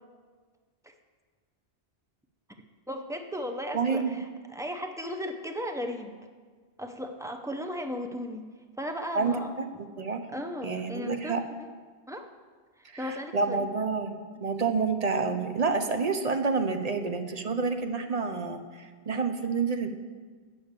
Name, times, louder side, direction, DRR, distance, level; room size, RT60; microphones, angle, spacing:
voice 1, 2.9-6.1 6.8-8.4 8.8-9.5 10.3-11.7 12.1-12.3 12.8-13.7, equal, 5° right, 4 dB, 0.4 m, -36 dB
voice 2, 3.7-4.2 9.1-9.3 10.0-10.3 10.6-11.4 12.8-19.9, right 4 dB, 45° right, 7 dB, 0.6 m, -28 dB
7.0 x 6.8 x 8.0 m, 1.5 s
omnidirectional pair, 1.1 m